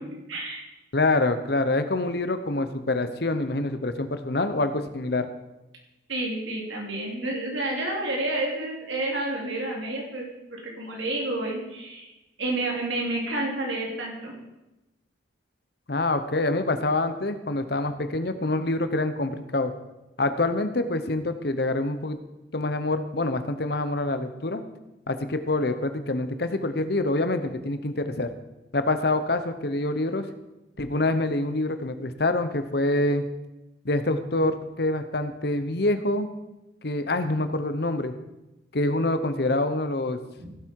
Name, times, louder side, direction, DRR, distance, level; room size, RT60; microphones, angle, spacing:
voice 1, 0.3-0.7 6.1-12.1 12.4-14.3 40.4-40.5, right 2 dB, 80° right, -1 dB, 3.4 m, -30 dB
voice 2, 0.9-5.3 15.9-19.7 20.2-22.2 22.5-24.6 25.1-28.3 28.7-30.3 30.8-33.3 33.8-36.3 36.8-38.1 38.7-40.2, left 2 dB, 55° left, 10 dB, 0.9 m, -26 dB
16.0 x 8.2 x 4.7 m, 0.97 s
head